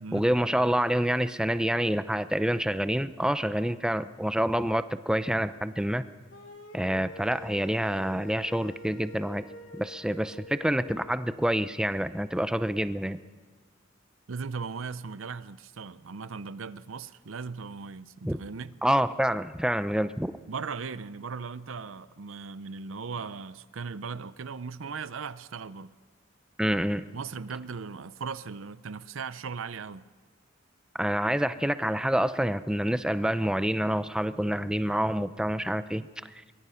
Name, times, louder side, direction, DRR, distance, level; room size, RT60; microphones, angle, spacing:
voice 1, 0.1-6.0 6.7-9.4 9.7-13.2 18.2-18.4 18.8-20.4 26.6-27.0 31.0-36.1, equal, 5° right, 0.6 m, -27 dB
sound 1, 6.3-11.2, left 2 dB, 65° left, 2.7 m, -47 dB
voice 2, 14.3-18.7 20.5-25.9 27.1-30.1, right 5 dB, 90° right, 0.7 m, -38 dB
24.0 x 21.5 x 5.7 m
head